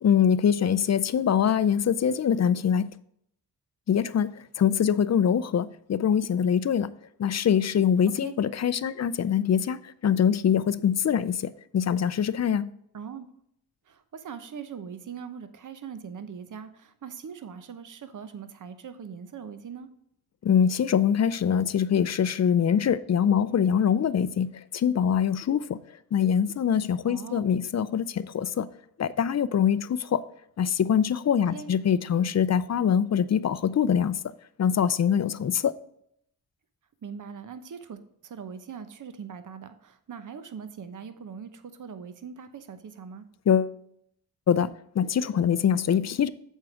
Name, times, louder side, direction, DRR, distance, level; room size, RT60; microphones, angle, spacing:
voice 1, 0.0-2.9 3.9-6.9 7.2-12.7 20.4-25.8 26.1-28.7 29.0-30.2 30.6-34.2 34.6-35.8 43.5-43.8 44.5-46.3, left 8 dB, 45° left, 0.5 m, -24 dB
voice 2, 12.9-13.3 13.9-19.9 27.0-27.4 31.5-31.7 37.0-43.2, right 6 dB, 50° right, 0.8 m, -41 dB
7.5 x 4.6 x 4.9 m
cardioid pair, 60°, 39 cm